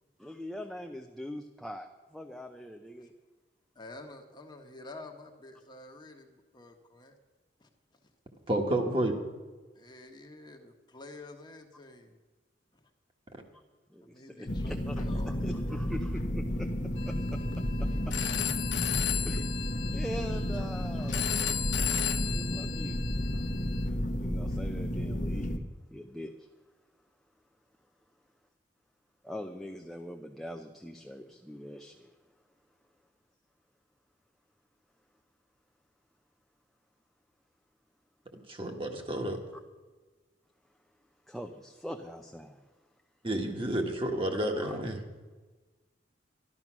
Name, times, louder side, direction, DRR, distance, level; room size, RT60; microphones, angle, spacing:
voice 1, 0.2-3.1 13.9-16.7 17.1-17.4 17.8-18.1 19.3-19.5 19.9-21.3 22.2-23.0 24.2-26.3 29.2-32.1 41.3-42.6 44.6-44.8, equal, ahead, 3 dB, 0.6 m, -42 dB
voice 2, 3.7-7.1 7.6-7.7 9.7-12.2 14.0-15.7 19.9-20.6, left 2 dB, 25° left, 4 dB, 1.3 m, -49 dB
voice 3, 8.5-9.1 38.5-39.4 43.2-45.0, right 1 dB, 30° right, 3 dB, 1.6 m, -30 dB
sound 1, 14.5-25.6, equal, 45° left, 0.9 m, -32 dB
Telephone, 17.0-23.9, left 10 dB, 85° left, 0.8 m, -35 dB
12.5 x 12.5 x 6.1 m, 1.3 s
head